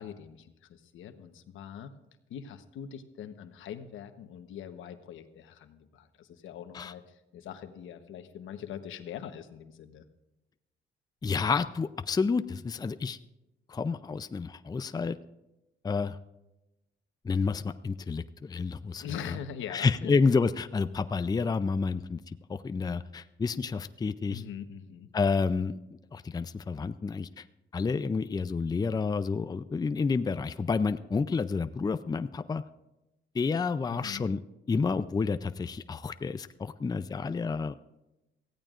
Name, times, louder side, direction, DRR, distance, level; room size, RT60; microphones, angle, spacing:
voice 1, 0.0-1.9 2.3-10.1 19.0-20.1 24.3-25.1 33.9-34.3, left 8 dB, 80° left, 8 dB, 1.1 m, -42 dB
voice 2, 11.2-13.2 13.7-15.2 15.8-16.2 17.2-19.0 19.7-24.4 25.1-25.8 26.1-27.4 27.7-32.6 33.3-34.4 34.7-37.7, left 4 dB, 20° left, 11 dB, 0.5 m, -29 dB
23.5 x 16.0 x 2.5 m, 0.97 s
cardioid pair, 90°, 20 cm